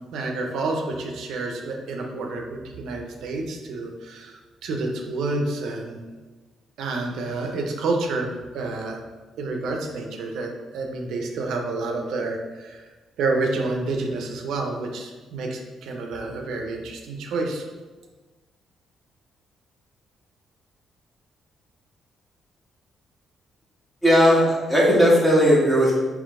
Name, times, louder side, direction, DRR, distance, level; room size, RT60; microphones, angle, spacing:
voice 1, 0.1-6.0 6.8-9.0 9.4-12.8 13.2-17.6, right 3 dB, 80° right, 2 dB, 0.5 m, -29 dB
voice 2, 24.0-25.9, equal, 10° left, -6 dB, 1.5 m, -17 dB
3.7 x 3.0 x 3.6 m, 1.3 s
cardioid pair, 90°, 0 cm